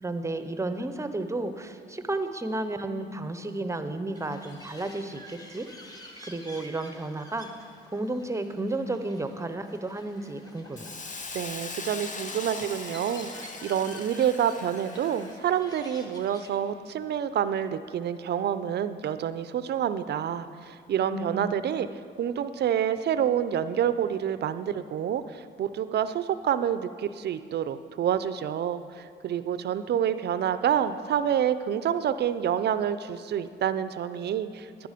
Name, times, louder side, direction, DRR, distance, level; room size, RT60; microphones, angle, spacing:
voice 1, 0.0-5.7 6.3-7.5 7.9-11.0 21.0-21.5, right 2 dB, 15° right, 9 dB, 0.7 m, -32 dB
sound 1, 4.1-16.5, equal, 20° left, 1.5 m, -50 dB
Hiss, 10.8-15.5, left 3 dB, 40° left, 0.9 m, -40 dB
voice 2, 11.3-21.9 22.2-34.9, right 9 dB, 55° right, 13 dB, 0.5 m, -28 dB
10.5 x 10.5 x 5.1 m, 2.4 s
cardioid pair, 90°, 20 cm